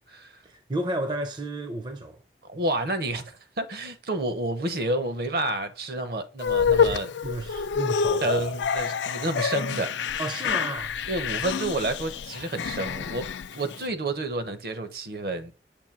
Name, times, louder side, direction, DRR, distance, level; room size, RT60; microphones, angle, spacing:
voice 1, 0.4-2.2 7.2-8.4 10.2-11.1, right 1 dB, 25° right, 0.5 m, -32 dB
voice 2, 2.5-7.1 8.2-10.2 11.1-15.5, right 2 dB, 55° right, 0.8 m, -30 dB
sound 1, 6.4-13.8, left 6 dB, 90° left, 0.4 m, -27 dB
7.1 x 2.7 x 5.7 m
head